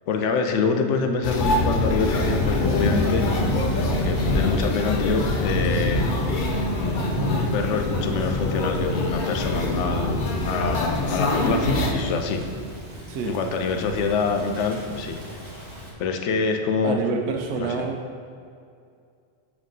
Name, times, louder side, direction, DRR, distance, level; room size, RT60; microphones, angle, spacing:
voice 1, 0.1-3.3 3.7-6.1 6.6-12.4 13.2-15.5 16.0-17.0 17.6-17.8, left 4 dB, 85° left, 5 dB, 0.9 m, -26 dB
sound 1, 1.2-11.9, left 2 dB, 55° left, 0.7 m, -25 dB
Thunder / Rain, 2.0-15.9, right 1 dB, 25° right, 1.2 m, -31 dB
voice 2, 16.8-18.0, right 5 dB, 75° right, 2 dB, 0.9 m, -27 dB
7.4 x 3.6 x 3.8 m, 2.3 s
omnidirectional pair, 1.2 m